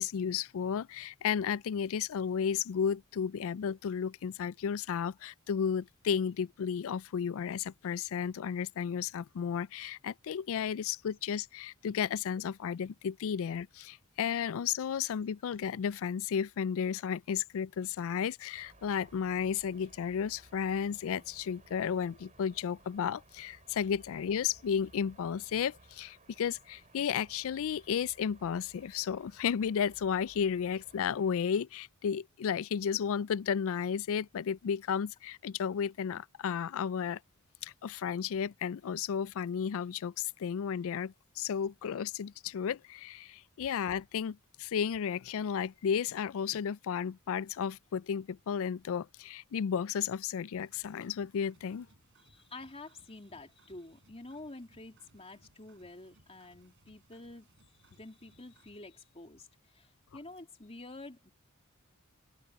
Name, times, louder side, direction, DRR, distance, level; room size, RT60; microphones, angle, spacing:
voice 1, 0.0-37.2 37.6-51.9, left 7 dB, 65° left, 0.4 m, -33 dB
sound 1, 18.5-31.3, right 2 dB, 35° right, 4.7 m, -60 dB
sound 2, 50.6-58.8, right 2 dB, 60° right, 4.5 m, -66 dB
voice 2, 52.2-57.5 57.9-61.3, left 2 dB, 30° left, 3.0 m, -49 dB
head